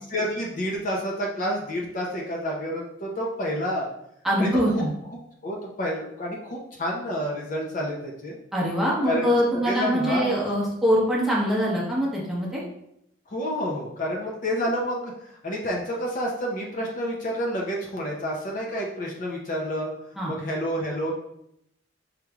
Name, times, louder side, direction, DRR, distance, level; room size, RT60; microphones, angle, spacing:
voice 1, 0.1-3.9 4.4-4.5 4.7-4.8 5.4-8.4 9.0-9.3 9.5-10.4 13.3-19.9 20.3-21.1, equal, 40° left, -1 dB, 0.6 m, -29 dB
voice 2, 4.2-4.9 8.5-12.6 20.2-20.3, equal, ahead, -6 dB, 0.8 m, -23 dB
5.0 x 3.1 x 2.3 m, 0.77 s
head